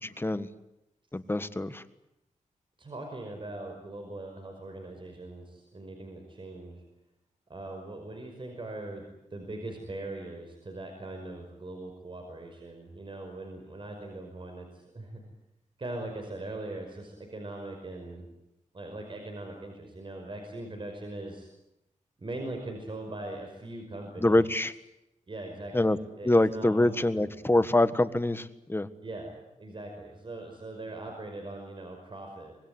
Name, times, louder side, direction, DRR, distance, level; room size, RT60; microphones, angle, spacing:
voice 1, 0.0-0.5 1.1-1.8 24.2-24.7 25.7-26.0 26.2-28.9, left 1 dB, 15° left, 11 dB, 1.6 m, -25 dB
voice 2, 2.8-6.8 7.5-9.1 9.3-15.2 15.8-18.2 18.7-21.5 22.2-24.5 25.3-27.6 29.0-32.6, right 2 dB, 40° right, 3 dB, 5.3 m, -41 dB
25.0 x 20.0 x 9.7 m, 0.87 s
wide cardioid pair, 80°, 13 cm